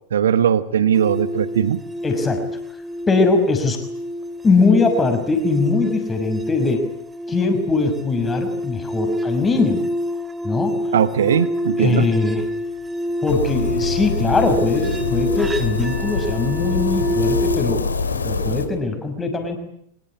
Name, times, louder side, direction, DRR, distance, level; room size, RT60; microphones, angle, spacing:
voice 1, 0.1-1.8 10.9-12.1, right 8 dB, 65° right, 15 dB, 1.3 m, -19 dB
sound 1, 0.9-17.6, equal, 10° right, 2.5 m, -27 dB
voice 2, 2.0-2.4 3.1-3.8 4.4-6.8 7.3-9.8 10.4-10.8 11.2-11.3 11.8-12.5 13.2-17.9 18.2-19.6, left 3 dB, 15° left, 6 dB, 5.8 m, -21 dB
sound 2, 13.3-18.7, left 4 dB, 75° left, 2.9 m, -25 dB
24.5 x 22.0 x 9.8 m, 0.73 s
figure-of-eight pair, 90°, 0 cm